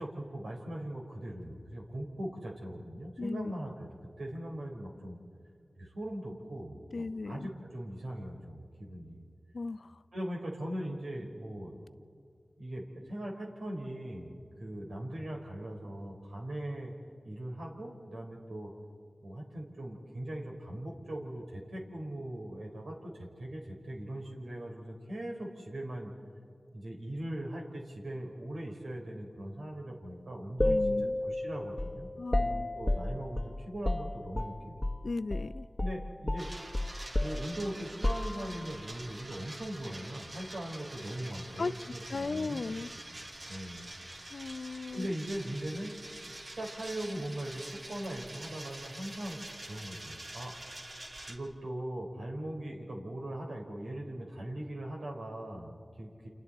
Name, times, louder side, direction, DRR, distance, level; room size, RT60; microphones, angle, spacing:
voice 1, 0.0-3.9 4.2-5.2 5.8-9.2 10.1-11.7 12.6-16.9 17.2-18.7 19.2-26.1 26.7-30.8 31.2-32.1 32.4-34.9 35.8-36.5 37.2-42.6 43.1-43.2 43.5-43.9 44.9-45.9 46.5-50.5 51.3-56.3, right 1 dB, 90° right, 0 dB, 4.4 m, -40 dB
voice 2, 3.2-3.5 6.9-7.5 9.5-9.9 30.6-31.1 32.2-32.7 35.0-35.7 41.6-41.7 42.1-42.9 44.3-45.1, left 3 dB, 75° left, 14 dB, 0.6 m, -36 dB
sound 1, 30.6-35.0 35.3-35.5 35.8-38.8, left 1 dB, 25° left, 1.1 m, -32 dB
sound 2, 36.4-51.3, right 1 dB, 60° right, 2.9 m, -46 dB
29.5 x 28.0 x 4.3 m, 2.4 s
cardioid pair, 40°, 0 cm